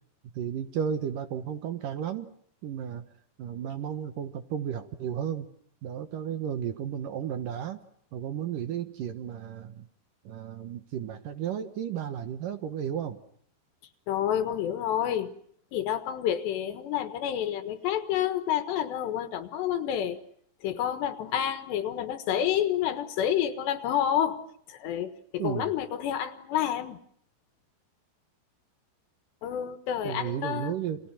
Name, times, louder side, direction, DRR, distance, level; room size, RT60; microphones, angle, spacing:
voice 1, 0.3-2.3 2.6-3.0 3.4-5.5 5.8-7.8 8.1-9.9 10.3-13.2 25.4-25.7 30.0-31.0, right 9 dB, 65° right, 10 dB, 2.3 m, -33 dB
voice 2, 14.1-15.3 15.7-20.2 20.6-24.4 24.7-27.0 29.4-30.8, left 10 dB, 75° left, 10 dB, 3.5 m, -29 dB
30.0 x 26.5 x 5.9 m, 0.65 s
omnidirectional pair, 5.2 m